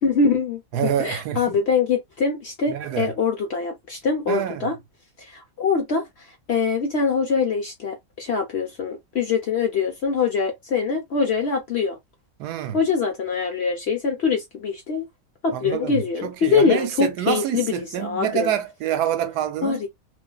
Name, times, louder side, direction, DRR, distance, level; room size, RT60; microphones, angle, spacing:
voice 1, 0.0-4.7 5.3-6.0 6.5-12.0 12.7-15.1 15.4-18.5 19.6-19.9, left 5 dB, 60° left, 0.7 m, -23 dB
voice 2, 0.7-1.6 2.7-3.1 4.3-4.7 12.4-12.8 15.5-19.8, right 10 dB, 85° right, 1.2 m, -26 dB
2.5 x 2.4 x 2.2 m
omnidirectional pair, 1.7 m